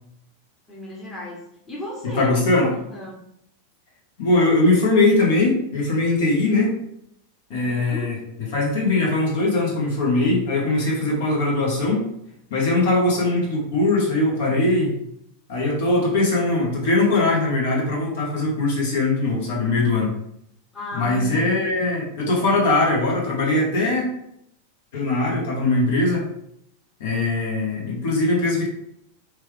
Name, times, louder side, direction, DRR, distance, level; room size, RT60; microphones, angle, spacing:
voice 1, 0.7-3.2 7.5-8.1 20.7-21.8, left 1 dB, 20° left, -3 dB, 0.9 m, -34 dB
voice 2, 2.0-2.7 4.2-6.8 7.5-8.2 8.5-12.0 12.5-15.0 15.5-20.1 20.9-24.1 24.9-26.2 27.0-28.7, left 2 dB, 70° left, -3 dB, 1.1 m, -21 dB
3.1 x 2.3 x 3.2 m, 0.73 s
hypercardioid pair, 100°, 0 cm